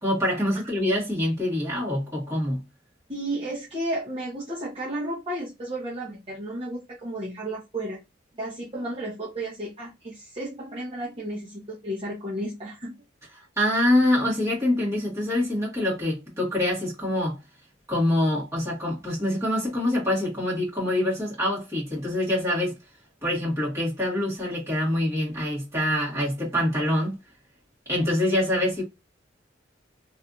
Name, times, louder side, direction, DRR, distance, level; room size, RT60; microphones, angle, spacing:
voice 1, 0.0-2.6 13.6-17.4 17.9-22.8 23.2-27.1 27.9-28.8, left 1 dB, 15° right, 1.7 m, -25 dB
voice 2, 3.1-8.0 8.3-12.9, right 1 dB, 30° right, 0.9 m, -33 dB
3.2 x 2.6 x 2.5 m
head